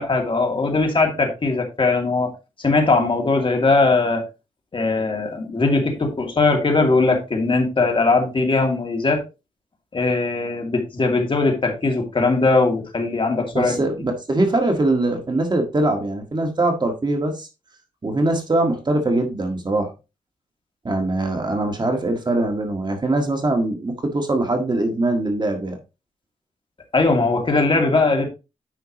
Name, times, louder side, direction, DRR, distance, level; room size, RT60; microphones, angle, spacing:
voice 1, 0.0-2.3 2.6-4.2 4.7-9.2 9.9-13.8 26.9-28.3, left 3 dB, 40° left, 2 dB, 2.5 m, -20 dB
voice 2, 13.5-17.5 18.0-19.9 20.8-25.8, right 2 dB, 30° right, 4 dB, 1.7 m, -22 dB
9.4 x 5.7 x 3.0 m, 0.28 s
cardioid pair, 85°, 14 cm